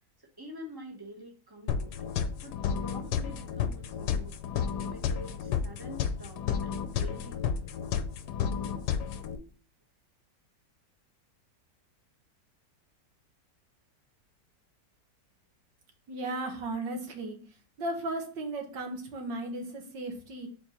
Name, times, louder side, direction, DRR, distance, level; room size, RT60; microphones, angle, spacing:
voice 1, 0.2-1.9 2.4-4.3 4.8-7.8, equal, 15° right, 0 dB, 1.1 m, -47 dB
sound 1, 1.7-9.4, left 7 dB, 75° left, 1.2 m, -32 dB
voice 2, 16.1-17.4 17.8-20.5, right 2 dB, 80° right, 3 dB, 2.0 m, -35 dB
4.6 x 4.4 x 5.3 m, 0.40 s
omnidirectional pair, 1.9 m